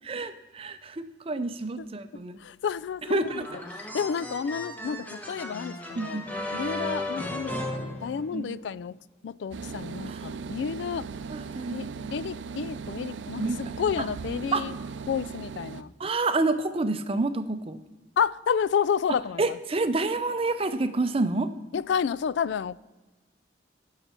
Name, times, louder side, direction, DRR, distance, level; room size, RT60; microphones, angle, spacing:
voice 1, 0.1-2.4 3.1-3.6 6.0-6.2 8.3-8.6 10.1-10.2 11.3-11.9 13.4-13.6 14.5-14.7 16.0-17.8 19.4-21.5, right 3 dB, 30° right, 0.6 m, -28 dB
voice 2, 2.4-6.2 6.5-9.0 9.2-11.1 11.7-14.7 15.1-15.9 18.2-19.6 21.7-22.8, left 7 dB, 75° left, 0.3 m, -30 dB
sound 1, 3.3-8.7, left 1 dB, 10° left, 1.0 m, -35 dB
sound 2, 9.5-15.8, right 5 dB, 90° right, 0.5 m, -38 dB
17.0 x 5.8 x 4.4 m
head